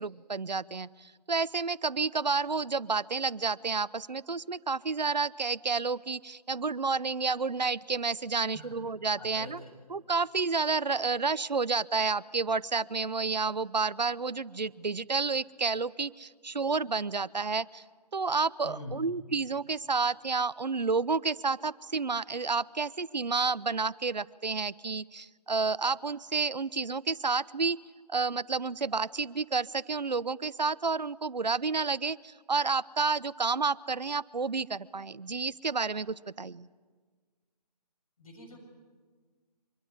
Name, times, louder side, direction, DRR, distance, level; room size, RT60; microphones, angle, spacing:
voice 1, 0.0-9.6 9.9-17.8 18.1-27.8 28.1-36.7, right 4 dB, 85° right, 19 dB, 0.8 m, -30 dB
voice 2, 9.2-9.7 18.6-19.0 38.2-38.7, left 1 dB, 55° left, 3 dB, 6.9 m, -44 dB
24.5 x 22.5 x 9.8 m, 1.5 s
figure-of-eight pair, 145°, 21 cm